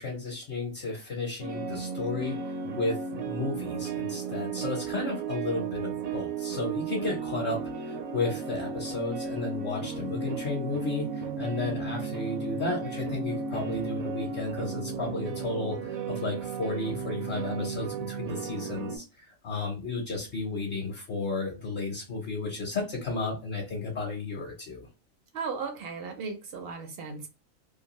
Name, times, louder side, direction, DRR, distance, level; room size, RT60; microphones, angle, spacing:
voice 1, 0.0-24.9, left 3 dB, 55° left, 0.9 m, -33 dB
sound 1, 1.4-19.0, right 5 dB, 90° right, 1.1 m, -34 dB
voice 2, 25.3-27.3, right 5 dB, 65° right, 0.6 m, -36 dB
2.6 x 2.3 x 2.9 m
omnidirectional pair, 1.4 m